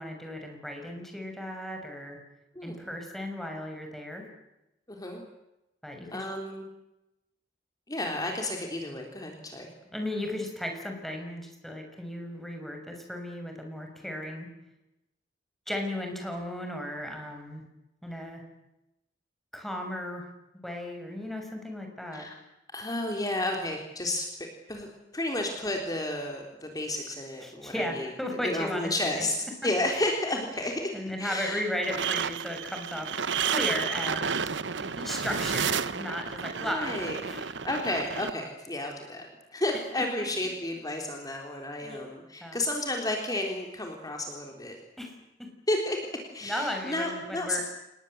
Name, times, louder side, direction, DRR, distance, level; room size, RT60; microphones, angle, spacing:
voice 1, 0.0-2.2 2.6-4.3 5.8-6.2 9.9-14.5 15.7-17.6 18.0-18.4 19.5-20.3 20.6-22.3 27.4-29.3 30.9-33.1 33.4-34.5 34.8-36.9 37.2-37.5 39.7-40.0 41.8-42.0 42.4-42.6 45.0-45.5 46.4-47.6, left 1 dB, ahead, 3 dB, 6.4 m, -35 dB
voice 2, 2.6-2.9 4.9-5.2 6.1-6.7 7.9-9.7 22.1-22.4 22.7-24.3 24.7-24.9 25.1-28.1 28.4-29.4 29.6-30.9 31.2-31.6 36.6-37.2 37.6-44.8 45.7-46.0 46.3-47.6, left 1 dB, 20° left, 2 dB, 3.6 m, -32 dB
sound 1, 31.8-38.3, right 6 dB, 70° right, 1.1 m, -31 dB
29.0 x 20.5 x 8.0 m, 0.91 s
head